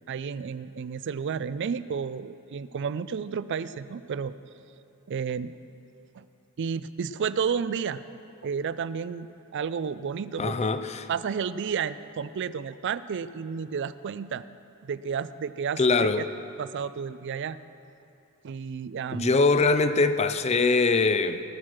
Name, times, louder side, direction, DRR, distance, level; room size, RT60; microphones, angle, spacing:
voice 1, 0.1-4.3 5.1-5.5 6.1-6.3 6.6-8.0 8.4-10.7 11.1-14.4 14.8-16.2 16.6-17.6 18.4-19.4, right 6 dB, 55° right, 0.4 m, -31 dB
voice 2, 10.4-11.1 15.8-16.2 19.1-21.4, left 3 dB, 30° left, 0.5 m, -22 dB
19.0 x 6.4 x 5.9 m
head